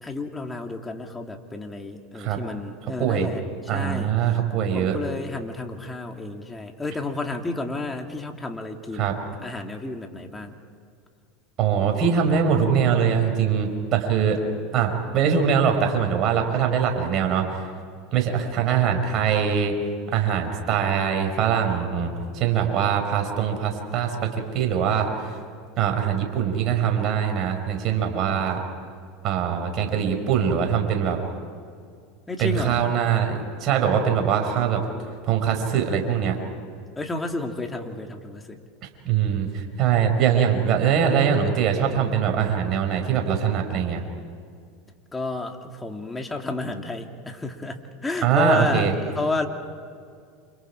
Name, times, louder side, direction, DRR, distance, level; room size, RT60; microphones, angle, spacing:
voice 1, 0.0-3.4 3.7-4.4 4.7-10.6 32.3-32.8 36.9-38.6 45.1-49.5, left 2 dB, 15° left, 3 dB, 3.0 m, -31 dB
voice 2, 3.0-3.3 3.7-5.0 9.0-9.1 11.6-14.4 14.7-17.5 18.1-19.7 20.1-24.2 24.5-25.4 25.8-28.6 29.2-31.2 32.4-34.8 35.3-36.4 39.1-44.0 48.2-48.9, right 7 dB, 45° right, 3 dB, 5.3 m, -22 dB
29.5 x 27.5 x 4.9 m, 2.2 s
hypercardioid pair, 90°, 0 cm